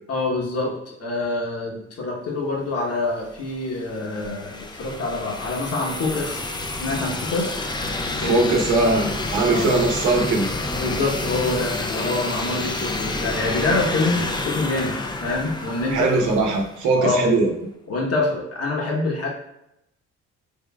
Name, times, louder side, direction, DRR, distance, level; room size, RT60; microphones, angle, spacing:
voice 1, 0.1-0.7 1.0-6.4 6.8-7.5 8.1-8.6 9.4-9.8 10.8-16.1 17.0-17.2 17.9-19.3, left 2 dB, 55° left, -1 dB, 1.0 m, -26 dB
sound 1, 3.3-17.0, left 2 dB, 15° left, 0.4 m, -29 dB
voice 2, 8.2-10.5 15.9-17.5, right 3 dB, 80° right, 0 dB, 0.8 m, -20 dB
3.7 x 3.2 x 2.2 m, 0.82 s
cardioid pair, 90°, 30 cm